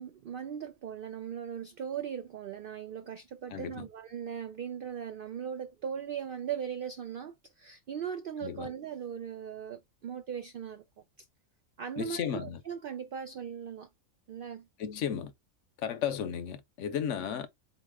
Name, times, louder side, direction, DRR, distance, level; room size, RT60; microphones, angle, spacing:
voice 1, 0.0-11.0 11.8-13.9 14.3-14.7, right 8 dB, 75° right, 0.5 m, -39 dB
voice 2, 3.5-3.9 8.4-8.7 12.0-12.6 14.8-15.3 15.8-17.5, left 8 dB, 70° left, 0.9 m, -34 dB
4.2 x 2.9 x 3.3 m
omnidirectional pair, 1.4 m